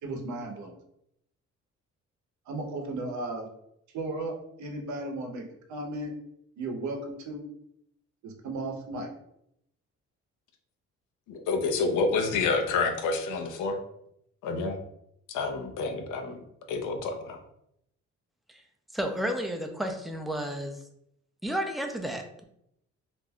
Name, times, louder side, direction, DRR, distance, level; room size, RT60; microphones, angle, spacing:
voice 1, 0.0-0.7 2.5-3.5 3.9-5.4 5.7-6.1 6.6-7.4 8.2-9.1, right 2 dB, 70° right, 3 dB, 0.7 m, -35 dB
voice 2, 11.3-13.8 14.4-14.8 15.3-16.4 16.7-17.4, left 4 dB, 85° left, 4 dB, 0.6 m, -28 dB
voice 3, 18.9-20.8 21.4-22.4, equal, ahead, 3 dB, 0.4 m, -32 dB
2.5 x 2.2 x 3.4 m, 0.76 s
cardioid pair, 90°, 30 cm